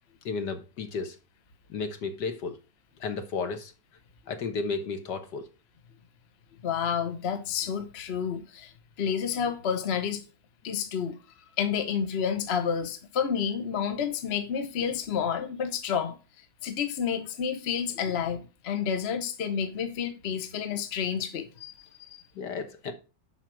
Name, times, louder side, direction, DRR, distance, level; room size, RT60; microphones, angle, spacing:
voice 1, 0.3-1.2 1.7-2.6 3.0-3.7 4.3-5.5 22.4-22.9, left 4 dB, 65° left, 1.7 m, -33 dB
voice 2, 6.6-8.7 9.0-10.2 10.6-11.2 11.6-16.2 16.6-22.2, left 7 dB, 40° left, 1.1 m, -30 dB
7.0 x 5.8 x 6.1 m
omnidirectional pair, 2.0 m